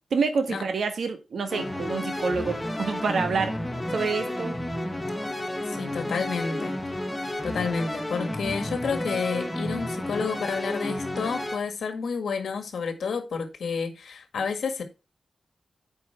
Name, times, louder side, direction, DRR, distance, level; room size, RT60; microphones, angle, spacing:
voice 1, 0.1-3.6 3.9-4.6, right 4 dB, 75° right, 1.5 m, -27 dB
sound 1, 1.5-11.6, left 1 dB, 10° left, 1.5 m, -31 dB
voice 2, 5.8-6.8 7.4-14.8, left 5 dB, 85° left, 1.8 m, -30 dB
8.7 x 5.5 x 4.4 m
wide cardioid pair, 110°, 0 cm